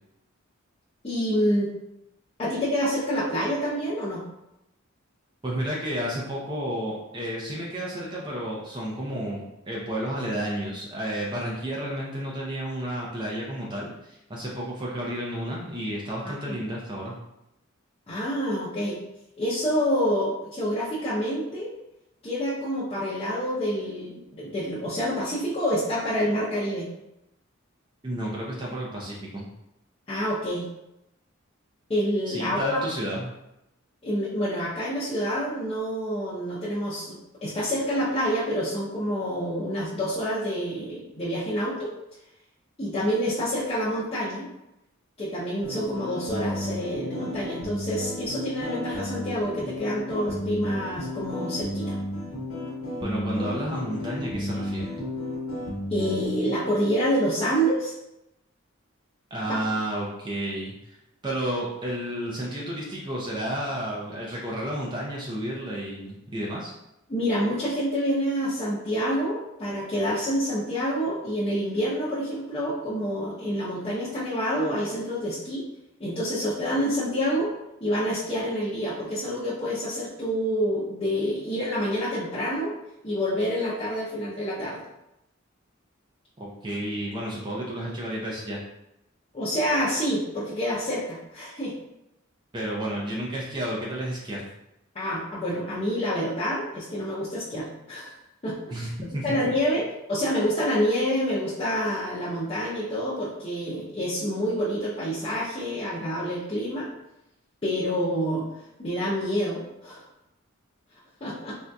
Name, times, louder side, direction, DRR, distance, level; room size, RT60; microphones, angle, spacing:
voice 1, 1.0-1.7 2.4-4.2 16.2-16.5 18.1-19.0 19.4-21.7 22.2-26.9 30.1-30.7 31.9-32.8 34.0-41.9 42.8-44.5 45.2-51.9 55.9-57.9 59.5-59.6 67.1-75.7 76.0-77.5 77.8-82.7 83.0-84.8 89.3-91.7 94.9-98.1 98.4-98.9 99.2-99.8 100.1-106.9 107.6-108.5 108.8-110.0 111.2-111.5, equal, 30° left, -10 dB, 0.6 m, -27 dB
voice 2, 5.4-17.2 28.0-29.5 32.3-33.3 53.0-54.8 59.3-61.0 61.2-66.7 86.4-88.6 92.5-94.4 98.7-99.4, right 1 dB, 20° right, -4 dB, 0.5 m, -31 dB
sound 1, 45.6-56.2, left 1 dB, 85° left, 0.9 m, -33 dB
3.6 x 2.6 x 2.2 m, 0.87 s
head